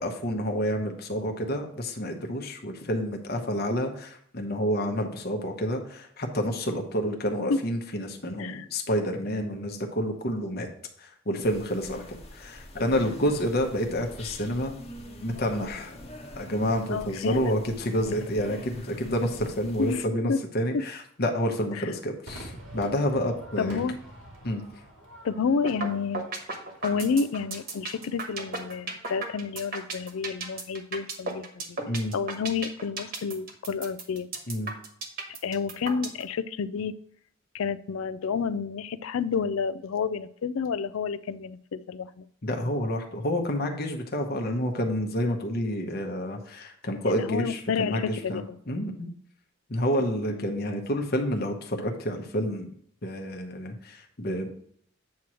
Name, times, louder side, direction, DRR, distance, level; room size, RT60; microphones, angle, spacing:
voice 1, 0.0-10.7 11.0-12.0 12.3-14.7 15.2-15.9 16.4-23.8 24.4-24.6 31.9-32.1 34.5-34.7 42.4-49.1 49.7-52.7 53.0-54.5, equal, 50° left, 3 dB, 1.0 m, -29 dB
sound 1, 11.4-20.0, left 1 dB, 30° left, 1.3 m, -43 dB
voice 2, 16.9-17.6 18.0-18.2 19.8-20.0 20.3-20.4 21.8-21.9 23.6-24.0 25.2-26.3 26.8-31.8 32.1-34.3 35.4-36.9 37.5-42.3 47.1-48.6 50.3-50.5, left 5 dB, 85° left, 14 dB, 0.4 m, -30 dB
Crowd / Fireworks, 22.3-28.8, right 1 dB, 85° right, 1.9 m, -47 dB
sound 2, 25.6-25.9 26.1-36.2, right 3 dB, 45° right, 1.3 m, -34 dB
8.4 x 3.0 x 6.2 m, 0.64 s
head